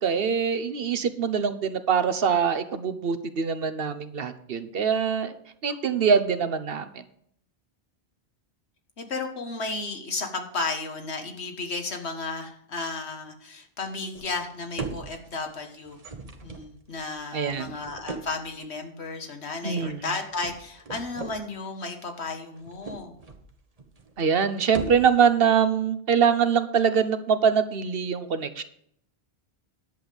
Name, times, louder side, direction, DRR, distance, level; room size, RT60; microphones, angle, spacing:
voice 1, 0.0-5.3 5.6-6.9 17.3-17.7 19.6-20.0 24.2-28.6, right 6 dB, 60° right, 11 dB, 1.1 m, -23 dB
voice 2, 9.0-16.0 16.4-23.2, left 3 dB, 80° left, 5 dB, 1.8 m, -33 dB
sound 1, 14.1-14.5 14.8-15.5 15.9-18.5 19.8-20.0 20.3-21.4 22.5-23.5 23.8-24.3 24.6-25.3, right 3 dB, 35° right, 1.1 m, -39 dB
10.5 x 7.7 x 5.2 m, 0.67 s
omnidirectional pair, 1.1 m